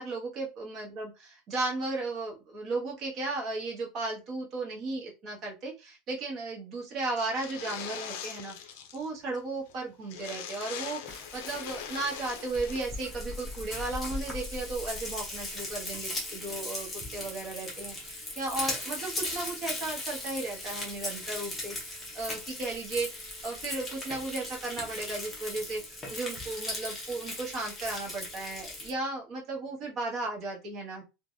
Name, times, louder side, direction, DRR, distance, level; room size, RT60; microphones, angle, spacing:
voice 1, 0.0-31.0, right 2 dB, 30° right, 0 dB, 0.9 m, -35 dB
sound 1, 7.2-9.1 9.3-9.4 9.7-9.8 10.1-12.8, left 8 dB, 60° left, 0.5 m, -41 dB
Frying (food), 11.1-28.9, left 2 dB, 10° left, 0.8 m, -38 dB
3.2 x 2.2 x 2.6 m, 0.27 s
supercardioid pair, 175°, 0 cm